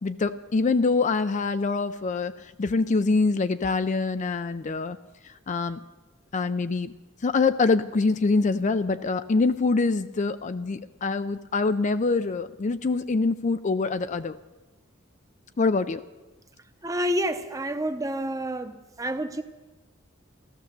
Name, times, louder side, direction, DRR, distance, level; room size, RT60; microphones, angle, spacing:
voice 1, 0.0-2.3 2.6-5.0 5.5-5.8 6.3-6.9 7.2-14.4 15.6-16.0, left 3 dB, 35° left, 11 dB, 0.4 m, -24 dB
voice 2, 16.8-18.7 19.0-19.4, equal, 15° right, 9 dB, 0.8 m, -28 dB
14.5 x 13.5 x 6.7 m, 1.2 s
head